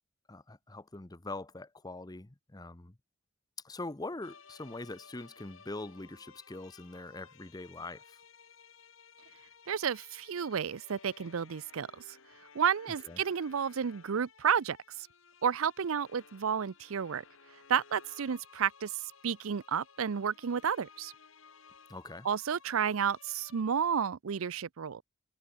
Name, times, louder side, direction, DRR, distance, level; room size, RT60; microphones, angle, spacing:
voice 1, 0.3-2.9 3.6-8.0 13.0-13.2 21.9-22.3, left 2 dB, 20° left, 0.8 m, -43 dB
sound 1, 4.2-23.6, left 6 dB, 70° left, 2.2 m, -58 dB
voice 2, 9.7-12.0 12.5-15.1 15.4-17.2 17.7-21.1 22.2-25.0, right 7 dB, 75° right, 0.5 m, -31 dB
head